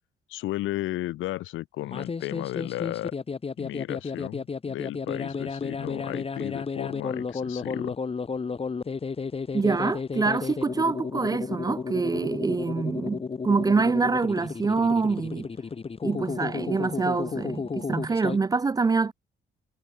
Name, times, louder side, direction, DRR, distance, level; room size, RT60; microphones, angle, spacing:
voice 1, 0.3-3.1 3.6-8.0, left 16 dB, 85° left, 0.9 m, -34 dB
sound 1, 1.8-18.4, left 5 dB, 30° left, 1.3 m, -32 dB
voice 2, 9.5-15.5 16.0-19.1, right 4 dB, 20° right, 0.3 m, -25 dB
cardioid pair, 90°, 20 cm